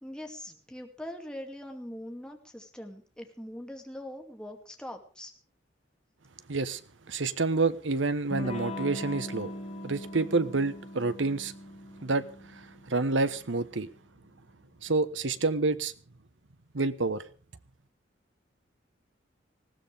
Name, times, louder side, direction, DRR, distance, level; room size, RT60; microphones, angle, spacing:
voice 1, 0.0-5.3, left 1 dB, 5° left, 2.4 m, -42 dB
voice 2, 6.5-6.8 7.1-9.5 9.8-11.5 12.0-12.3 12.5-12.6 12.9-13.9 14.8-15.9 16.7-17.2, right 3 dB, 80° right, 1.2 m, -28 dB
Electric guitar / Strum, 8.3-13.7, left 1 dB, 35° left, 2.2 m, -41 dB
20.5 x 16.0 x 3.5 m
head